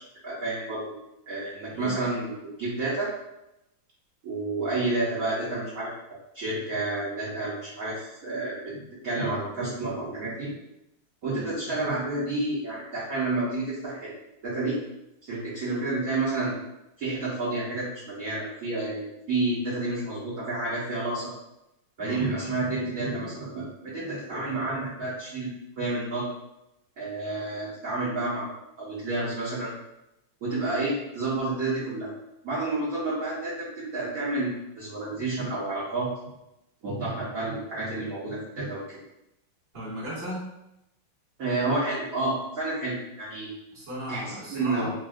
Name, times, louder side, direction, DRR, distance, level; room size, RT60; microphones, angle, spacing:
voice 1, 0.2-0.8 1.3-2.3 2.6-3.1 4.2-5.9 6.3-10.5 11.2-14.2 14.4-14.8 15.3-16.5 17.0-21.3 22.0-26.3 27.0-29.7 30.4-32.1 32.4-36.1 36.8-39.0 41.4-43.5 44.1-44.9, right 2 dB, 60° right, -9 dB, 0.9 m, -30 dB
voice 2, 39.7-40.4 43.7-44.9, equal, 20° right, -9 dB, 0.9 m, -36 dB
3.4 x 2.3 x 2.4 m, 0.88 s
omnidirectional pair, 2.4 m